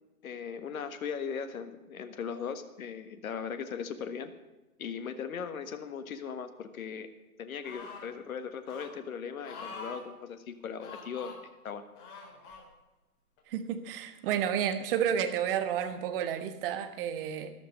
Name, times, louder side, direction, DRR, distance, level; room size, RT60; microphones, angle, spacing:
voice 1, 0.2-4.3 4.8-7.1 7.4-11.3 11.6-11.8, left 6 dB, 65° left, 9 dB, 1.5 m, -38 dB
sound 1, 7.6-8.1 8.7-8.9 9.4-10.0 10.8-11.4 12.0-12.6 13.4-13.5, left 4 dB, 35° left, 4.2 m, -45 dB
voice 2, 13.5-17.5, right 9 dB, 35° right, 9 dB, 1.5 m, -31 dB
13.5 x 12.5 x 5.4 m, 1.1 s
figure-of-eight pair, 125°, 46 cm